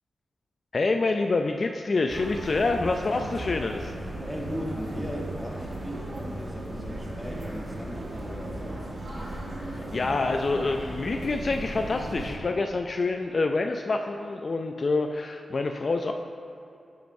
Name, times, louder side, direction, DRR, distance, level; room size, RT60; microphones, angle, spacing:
voice 1, 0.7-3.9 9.6-16.1, left 3 dB, 50° left, 4 dB, 0.3 m, -27 dB
sound 1, 2.1-12.4, right 1 dB, 50° right, 1.4 m, -36 dB
voice 2, 4.2-8.6, equal, 5° left, -2 dB, 1.4 m, -37 dB
10.5 x 7.7 x 2.6 m, 2.6 s
cardioid pair, 75°, 0 cm